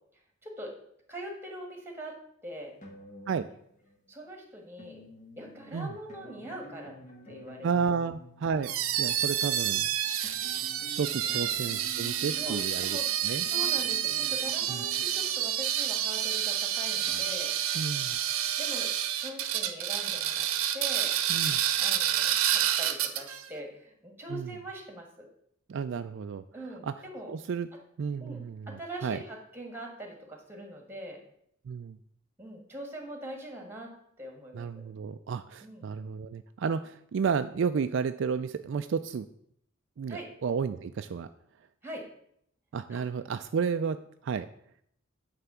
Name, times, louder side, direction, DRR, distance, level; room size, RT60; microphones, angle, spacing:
voice 1, 0.4-0.7 1.1-2.7 4.1-5.0 5.4-6.9 7.3-7.7 11.2-11.4 12.3-13.1 13.5-17.6 18.6-18.9 19.1-20.5 20.7-21.1 21.8-25.3 26.5-27.3 27.7-27.8 28.2-31.2 32.4-33.9 34.2-34.8 35.6-35.9 40.1-40.3 41.8-42.0 42.9-43.0, right 1 dB, 10° right, 2 dB, 1.7 m, -42 dB
sound 1, 2.8-4.1 4.8-15.9 16.6-17.3, equal, 35° left, 1.6 m, -50 dB
voice 2, 7.6-8.7 9.0-9.9 11.0-13.0 13.2-13.4 14.7-14.8 17.7-18.2 21.3-21.6 24.3-24.5 25.7-26.4 26.8-26.9 27.3-27.7 28.0-29.2 31.7-32.0 34.5-39.3 40.0-41.3 42.7-44.0 44.2-44.5, right 6 dB, 60° right, 9 dB, 0.3 m, -32 dB
sound 2, 8.6-23.4, right 10 dB, 90° right, 0.7 m, -29 dB
9.4 x 3.4 x 6.9 m, 0.70 s
head